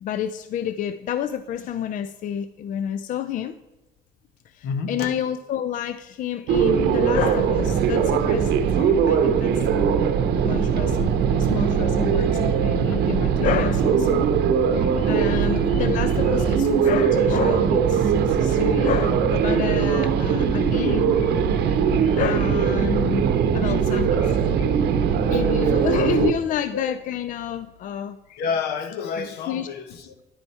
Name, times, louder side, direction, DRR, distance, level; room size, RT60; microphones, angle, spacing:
voice 1, 0.0-3.5 4.5-10.0 10.4-14.2 14.7-23.2 23.5-28.4 29.2-29.7, left 9 dB, 50° left, 0.4 m, -29 dB
voice 2, 4.6-5.1 12.2-12.3 12.9-13.2 15.3-15.4 23.6-23.7 25.3-25.4 26.7-27.0 28.4-30.2, left 5 dB, 75° left, 1.0 m, -30 dB
sound 1, 6.5-26.3, right 7 dB, 75° right, 0.7 m, -20 dB
10.5 x 4.5 x 4.1 m
cardioid pair, 110°, 17 cm